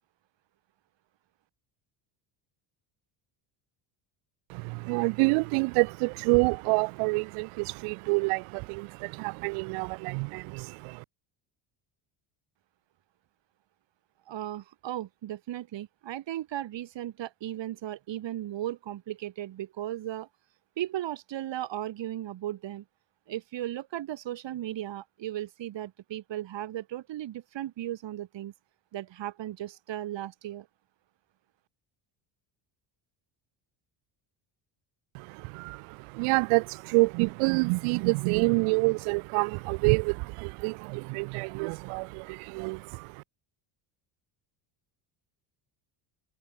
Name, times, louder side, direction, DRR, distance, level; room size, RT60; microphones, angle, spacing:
voice 1, 4.5-11.0 35.1-43.2, right 30 dB, 85° right, 0.5 m, -27 dB
voice 2, 14.3-20.3 20.8-22.8 23.3-28.5 28.9-30.7, right 13 dB, 60° right, 4.9 m, -36 dB
cardioid pair, 110°, 50 cm